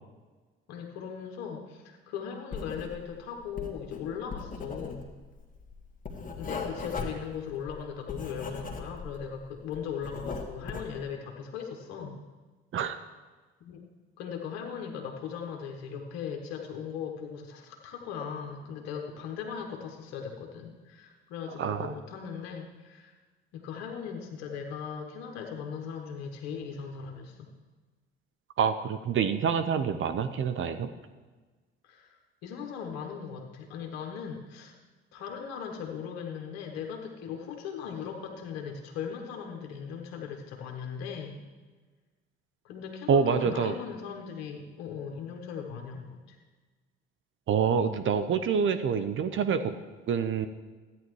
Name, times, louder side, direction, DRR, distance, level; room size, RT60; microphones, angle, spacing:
voice 1, 0.7-5.1 6.4-12.2 13.6-13.9 14.2-23.2 23.5-27.5 31.8-34.7 35.1-41.4 42.6-46.4, left 7 dB, 65° left, 2 dB, 1.2 m, -38 dB
Writing, 2.5-3.2 3.4-9.3 9.6-11.0, left 4 dB, 25° left, 1.7 m, -38 dB
voice 2, 21.6-21.9 28.6-30.9 43.1-43.8 47.5-49.7 50.1-50.5, right 6 dB, 45° right, 9 dB, 0.7 m, -26 dB
13.5 x 9.3 x 3.2 m, 1.4 s
hypercardioid pair, 55°, 30 cm